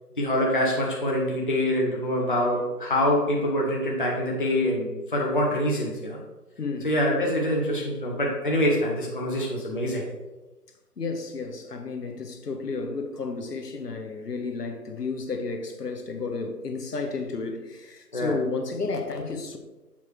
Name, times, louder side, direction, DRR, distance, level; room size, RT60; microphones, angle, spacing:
voice 1, 0.2-6.2 6.8-10.1 18.1-18.4, left 1 dB, 35° left, 0.7 m, -25 dB
voice 2, 6.6-6.9 11.0-19.6, left 4 dB, 70° left, 1.1 m, -32 dB
7.0 x 3.2 x 4.6 m
figure-of-eight pair, 165°, 48 cm